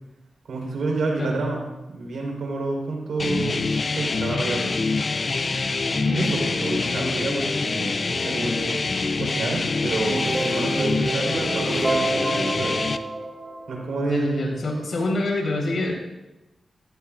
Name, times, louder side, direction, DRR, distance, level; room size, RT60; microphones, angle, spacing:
voice 1, 0.5-3.7 3.9-4.7 5.9-8.9 9.2-12.8 13.7-14.5, right 3 dB, 85° right, 0 dB, 4.2 m, -29 dB
sound 1, 3.2-13.0, left 3 dB, 50° left, 0.6 m, -25 dB
sound 2, 9.9-14.2, right 2 dB, 30° right, 1.4 m, -29 dB
voice 2, 14.0-16.1, left 2 dB, 65° left, 0 dB, 4.3 m, -26 dB
16.5 x 15.0 x 2.5 m, 0.97 s
cardioid pair, 65°, 0 cm